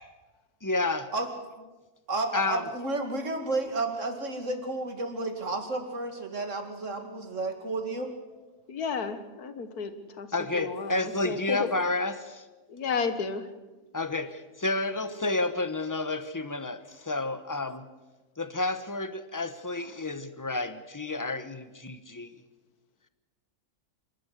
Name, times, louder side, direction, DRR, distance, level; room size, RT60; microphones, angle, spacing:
voice 1, 0.6-1.1 2.3-2.6 10.3-12.4 13.9-17.8 18.4-22.3, left 2 dB, 15° left, 12 dB, 0.8 m, -30 dB
voice 2, 2.1-8.1, right 2 dB, 55° right, 5 dB, 2.7 m, -32 dB
voice 3, 8.7-10.3 10.5-11.7 12.7-13.5, left 5 dB, 80° left, 10 dB, 2.0 m, -32 dB
27.0 x 13.0 x 8.1 m, 1.2 s
omnidirectional pair, 1.6 m